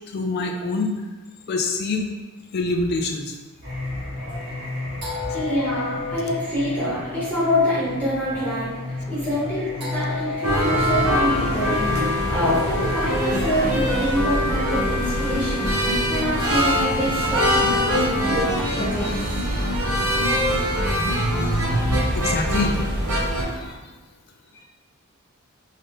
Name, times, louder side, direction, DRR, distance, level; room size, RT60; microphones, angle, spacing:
voice 1, 0.1-0.9 1.5-2.1 2.5-3.3 22.1-22.7 23.6-23.7, left 3 dB, 45° left, 3 dB, 0.3 m, -25 dB
Singing, 3.6-13.9, left 2 dB, 50° right, 1.4 m, -31 dB
voice 2, 5.3-15.8 16.1-19.4, equal, 10° left, -11 dB, 1.0 m, -26 dB
sound 1, 10.4-23.4, equal, 85° right, 0.7 m, -23 dB
sound 2, 17.1-23.7, left 1 dB, 90° left, 0.8 m, -40 dB
3.7 x 2.7 x 3.5 m, 1.2 s
head